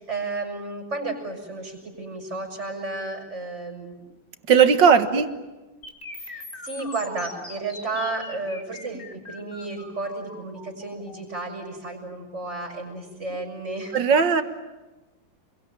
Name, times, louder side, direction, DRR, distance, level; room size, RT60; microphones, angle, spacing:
voice 1, 0.0-4.0 5.1-5.2 6.2-14.0, right 3 dB, 35° right, 3 dB, 6.1 m, -32 dB
voice 2, 4.5-5.3 13.9-14.4, right 6 dB, 70° right, 9 dB, 2.2 m, -17 dB
sound 1, 5.8-13.8, left 2 dB, 25° left, 2.8 m, -43 dB
28.5 x 23.0 x 9.0 m, 1.1 s
omnidirectional pair, 2.1 m